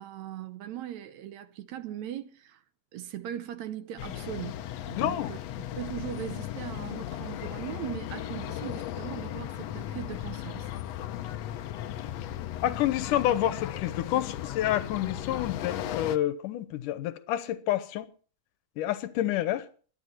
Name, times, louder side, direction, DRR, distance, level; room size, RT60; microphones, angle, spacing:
voice 1, 0.0-2.6 2.9-4.6 4.9-5.4 5.8-10.7, right 11 dB, 70° right, 2.0 m, -39 dB
sound 1, 4.0-16.2, left 12 dB, 70° left, 1.8 m, -36 dB
voice 2, 5.0-5.3 12.6-18.1 18.8-19.7, left 13 dB, 85° left, 2.5 m, -28 dB
22.5 x 9.9 x 4.4 m
omnidirectional pair, 3.6 m